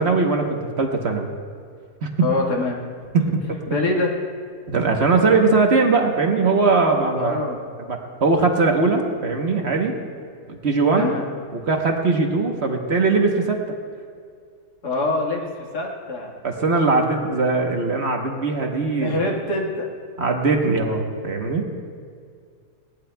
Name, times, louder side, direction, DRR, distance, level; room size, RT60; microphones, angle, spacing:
voice 1, 0.0-1.3 2.0-2.3 3.1-3.6 4.7-7.4 7.9-9.9 10.5-11.1 11.5-13.6 16.4-19.1 20.2-21.6, right 3 dB, 45° right, 2 dB, 1.2 m, -20 dB
voice 2, 2.2-2.8 3.7-4.1 7.1-7.6 11.0-11.2 14.8-16.3 19.0-19.9, left 2 dB, 90° left, -1 dB, 2.3 m, -24 dB
20.5 x 17.5 x 2.3 m, 2.2 s
omnidirectional pair, 1.7 m